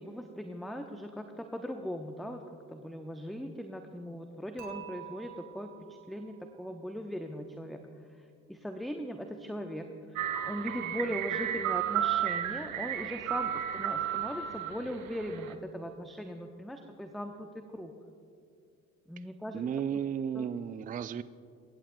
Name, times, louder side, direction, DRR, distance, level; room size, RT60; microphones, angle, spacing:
voice 1, 0.0-2.4 2.7-17.9 19.1-19.6 20.3-20.5, equal, ahead, 6 dB, 0.8 m, -39 dB
Dishes pots and pans / Chink clink, 4.6-6.7, right 13 dB, 45° right, 2.9 m, -48 dB
sound 1, 10.2-15.5, right 10 dB, 80° right, 0.7 m, -33 dB
voice 2, 19.5-21.2, right 8 dB, 20° right, 16 dB, 0.4 m, -33 dB
21.5 x 17.0 x 2.3 m, 2.5 s
figure-of-eight pair, 45°, 40 cm